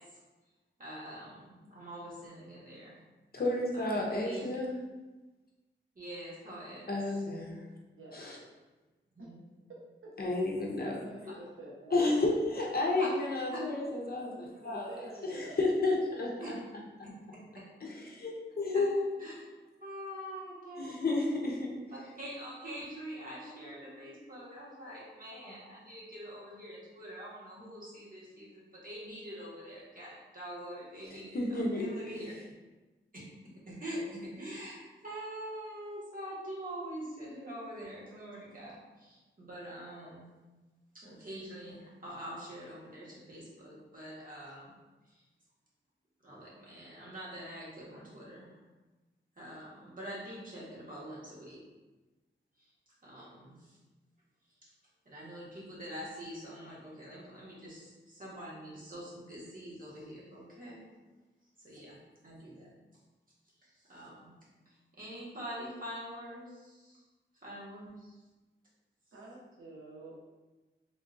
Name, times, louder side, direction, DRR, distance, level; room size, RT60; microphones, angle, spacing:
voice 1, 0.8-3.0 3.7-4.5 5.9-6.9 9.1-9.4 13.0-13.1 13.5-13.6 16.4-16.5 17.0-17.1 18.7-18.8 19.2-19.3 19.8-21.1 21.9-32.3 33.7-40.3 40.9-44.7 45.1-45.2 46.2-48.6 49.4-51.6 52.6-52.7 53.0-53.8 55.0-60.8 61.6-62.0 62.2-62.7 63.6-64.4 64.7-67.0 67.4-68.2, equal, 45° right, -7 dB, 1.2 m, -45 dB
voice 2, 3.3-4.7 6.9-7.7 8.1-8.4 10.2-11.0 11.9-16.6 17.8-19.1 20.8-21.7 31.1-31.9, left 2 dB, 50° left, -2 dB, 0.6 m, -31 dB
voice 3, 7.9-8.2 11.0-12.1 14.6-15.6 69.1-70.2, right 1 dB, 85° right, -5 dB, 0.8 m, -47 dB
3.6 x 2.4 x 2.5 m, 1.2 s
wide cardioid pair, 95°, 20 cm